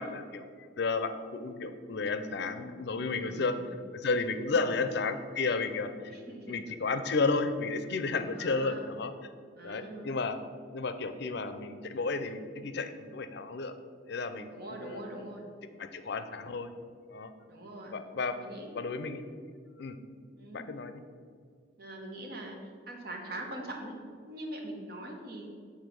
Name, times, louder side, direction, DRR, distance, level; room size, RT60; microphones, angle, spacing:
voice 1, 0.0-3.6 3.9-5.9 6.5-9.1 9.6-10.4 10.7-13.7 14.1-15.0 15.8-16.7 17.1-17.3 17.9-18.4 18.7-19.3 19.8-20.0 20.5-21.0, left 4 dB, 65° left, 10 dB, 0.5 m, -32 dB
voice 2, 3.2-3.7 4.5-4.8 6.1-6.6 8.3-8.9 9.6-10.1 14.5-15.5 17.5-18.0 18.3-18.7 20.4-20.7 21.8-22.6 22.9-24.0 24.3-25.5, right 1 dB, 55° right, 1 dB, 1.3 m, -42 dB
7.2 x 4.4 x 6.2 m, 2.1 s
head